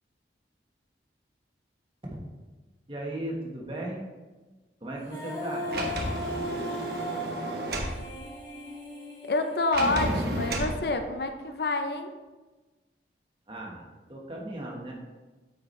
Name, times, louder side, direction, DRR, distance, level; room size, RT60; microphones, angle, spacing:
voice 1, 2.9-4.0 4.8-5.7 13.5-13.8 14.1-14.9, right 1 dB, 30° right, -2 dB, 1.4 m, -36 dB
Female singing, 5.0-10.2, equal, 25° left, 1.6 m, -37 dB
Sliding door, 5.7-8.0 9.7-10.8, right 1 dB, 60° right, 1.1 m, -31 dB
voice 2, 9.2-12.1, left 2 dB, 60° left, 6 dB, 0.6 m, -28 dB
8.5 x 6.0 x 3.2 m, 1.2 s
head